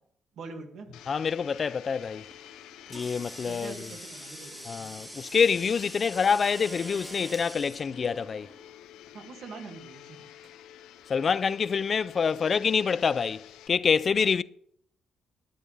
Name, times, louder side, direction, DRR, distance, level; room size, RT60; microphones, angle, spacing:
voice 1, 0.4-0.9 3.5-4.9 9.1-10.3, right 4 dB, 70° right, 2.3 m, -44 dB
Domestic sounds home sounds, 0.9-13.7, left 11 dB, 90° left, 0.6 m, -50 dB
voice 2, 1.1-2.3 2.9-3.9 4.7-8.5 11.1-14.4, left 6 dB, 45° left, 0.4 m, -26 dB
Water tap faucet, 2.2-8.7, equal, 5° right, 2.1 m, -45 dB
sound 1, 6.4-7.5 8.9-9.0 10.3-10.6 11.5-11.6, right 3 dB, 30° right, 1.5 m, -46 dB
12.5 x 11.0 x 3.5 m
cardioid pair, 90°, 0 cm